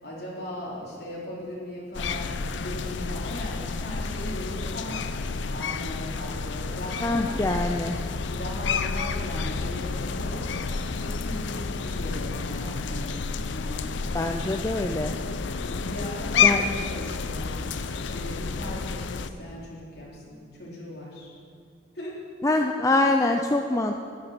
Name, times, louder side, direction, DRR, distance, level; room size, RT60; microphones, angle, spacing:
voice 1, 0.0-7.7 8.3-14.0 15.6-21.3 21.9-22.2, left 1 dB, 55° left, -6 dB, 3.9 m, -38 dB
sound 1, 1.9-19.3, left 5 dB, 75° left, 0.6 m, -30 dB
voice 2, 7.0-8.0 14.1-15.1 16.4-16.6 22.4-23.9, left 2 dB, 15° left, 3 dB, 0.4 m, -24 dB
12.0 x 11.0 x 6.0 m, 2.2 s
head